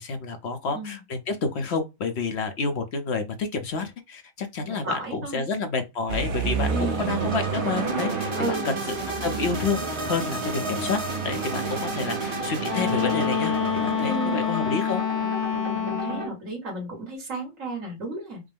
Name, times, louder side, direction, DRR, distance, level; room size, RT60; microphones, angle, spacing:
voice 1, 0.0-15.0, left 4 dB, 60° left, 0.9 m, -29 dB
voice 2, 4.6-5.4 6.7-7.1 8.4-8.8 14.0-14.4 15.7-18.4, right 2 dB, 80° right, 2.3 m, -33 dB
sound 1, 6.1-14.2, right 5 dB, 45° right, 1.0 m, -31 dB
sound 2, 6.6-16.3, right 1 dB, 25° right, 1.0 m, -33 dB
Wind instrument woodwind instrument, 12.7-16.4, left 7 dB, 90° left, 1.5 m, -27 dB
5.1 x 2.1 x 3.4 m
omnidirectional pair, 1.4 m